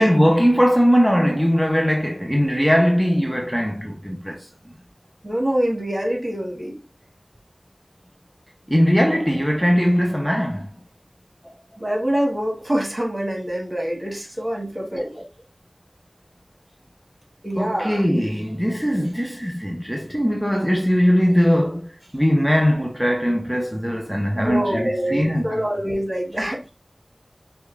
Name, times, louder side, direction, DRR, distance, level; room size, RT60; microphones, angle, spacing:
voice 1, 0.0-4.5 8.7-10.7 17.6-25.7, equal, ahead, 0.7 m, -20 dB
voice 2, 5.2-6.8 11.8-15.2 17.4-18.1 24.3-26.7, equal, 35° right, 1.6 m, -25 dB
6.1 x 2.3 x 3.2 m
wide cardioid pair, 45°, 0 cm